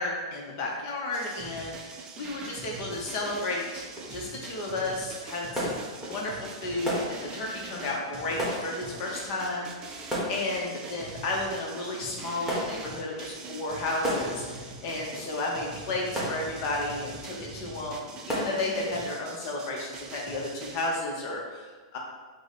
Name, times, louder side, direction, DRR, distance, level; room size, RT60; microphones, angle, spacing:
voice 1, 0.0-3.8 4.1-22.0, left 2 dB, 50° left, -1 dB, 0.7 m, -33 dB
sound 1, 1.1-21.0, right 4 dB, 30° right, 0.4 m, -43 dB
sound 2, 2.1-18.9, equal, ahead, 1.2 m, -38 dB
4.8 x 2.0 x 3.9 m, 1.4 s
hypercardioid pair, 125°, 3 cm